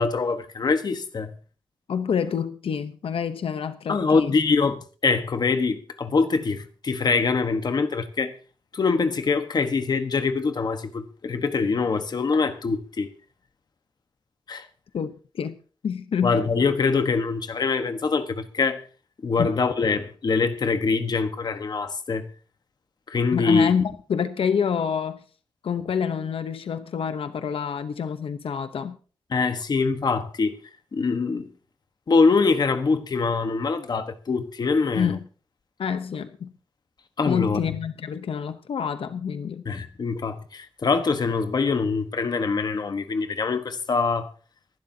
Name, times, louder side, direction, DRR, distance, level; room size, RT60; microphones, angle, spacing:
voice 1, 0.0-1.3 3.9-8.3 8.7-13.1 14.5-14.7 16.2-18.9 19.2-22.3 23.1-23.7 29.3-30.6 30.9-31.5 32.1-35.1 37.2-37.8 39.6-44.3, left 4 dB, 50° left, 1.2 m, -24 dB
voice 2, 1.9-4.4 14.9-15.6 15.8-16.4 19.4-19.5 23.3-25.2 25.6-29.0 34.9-35.2 35.8-36.5 37.3-39.6, left 7 dB, 90° left, 0.8 m, -27 dB
25.0 x 12.0 x 2.8 m
wide cardioid pair, 170°, 9 cm